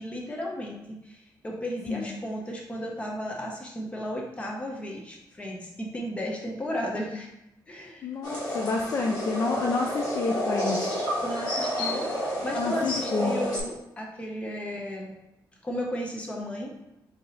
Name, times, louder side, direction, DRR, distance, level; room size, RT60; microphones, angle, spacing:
voice 1, 0.0-7.3 7.7-8.1 11.2-15.1 15.6-16.7, equal, 15° left, -1 dB, 0.8 m, -34 dB
voice 2, 8.0-10.8 12.5-13.4, left 4 dB, 40° left, 0 dB, 0.4 m, -29 dB
sound 1, 8.2-13.6, equal, 55° left, 1.5 m, -30 dB
4.7 x 2.8 x 3.9 m, 0.89 s
wide cardioid pair, 175°, 8 cm